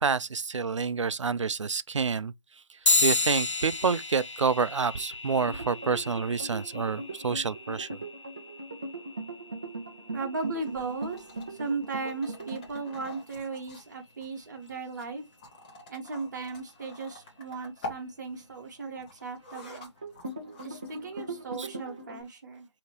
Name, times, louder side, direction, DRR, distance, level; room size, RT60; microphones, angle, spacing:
voice 1, 0.0-2.3 3.0-7.9 21.6-21.7, right 5 dB, 85° right, 0.4 m, -28 dB
sound 1, 2.8-12.7, left 3 dB, 85° left, 0.8 m, -33 dB
sound 2, 5.4-13.4 20.0-22.2, right 2 dB, 15° right, 0.3 m, -40 dB
voice 2, 10.1-15.2 15.9-19.9 20.6-22.7, right 4 dB, 40° right, 1.1 m, -36 dB
sound 3, 10.4-22.0, left 2 dB, 15° left, 0.8 m, -48 dB
5.1 x 2.8 x 3.0 m
figure-of-eight pair, 160°, 15 cm